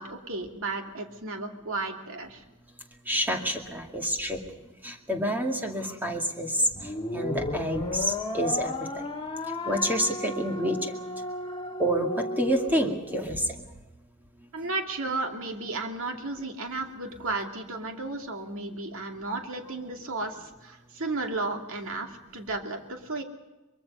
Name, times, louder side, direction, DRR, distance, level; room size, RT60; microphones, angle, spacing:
voice 1, 0.0-2.4 14.5-23.2, right 3 dB, 65° right, 4 dB, 2.5 m, -34 dB
voice 2, 3.1-4.4 4.8-8.8 9.7-10.8 11.8-13.6, equal, 10° right, 2 dB, 2.3 m, -28 dB
sound 1, 6.8-13.2, left 1 dB, 25° left, 1.7 m, -34 dB
23.5 x 22.5 x 5.5 m, 1.1 s
head